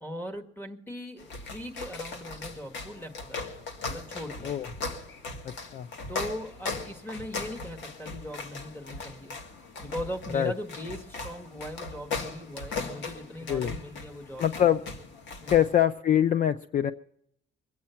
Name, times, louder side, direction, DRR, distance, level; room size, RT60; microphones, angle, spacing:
voice 1, 0.0-4.7 6.1-9.3 9.8-14.7 15.4-15.5, equal, 10° left, 7 dB, 1.7 m, -39 dB
sound 1, 1.2-15.8, left 3 dB, 75° left, 2.2 m, -38 dB
voice 2, 5.4-5.9 10.3-10.5 13.5-13.7 14.4-14.8 15.5-16.9, left 10 dB, 45° left, 13 dB, 0.5 m, -24 dB
23.0 x 8.6 x 5.7 m, 0.70 s
cardioid pair, 130°, 19 cm